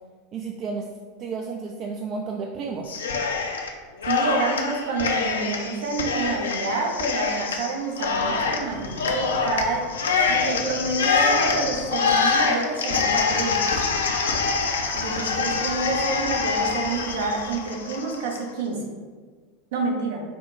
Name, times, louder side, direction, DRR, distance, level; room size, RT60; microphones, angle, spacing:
voice 1, 0.3-0.9 1.2-3.0, right 4 dB, 40° right, 1 dB, 0.3 m, -32 dB
Cheering, 2.9-3.7 4.0-18.4, left 5 dB, 75° left, 0.4 m, -25 dB
voice 2, 4.0-9.9 10.3-13.6 14.9-18.9 19.7-20.2, right 3 dB, 60° right, 0 dB, 0.8 m, -28 dB
4.2 x 2.1 x 3.8 m, 1.5 s
figure-of-eight pair, 85°, 0 cm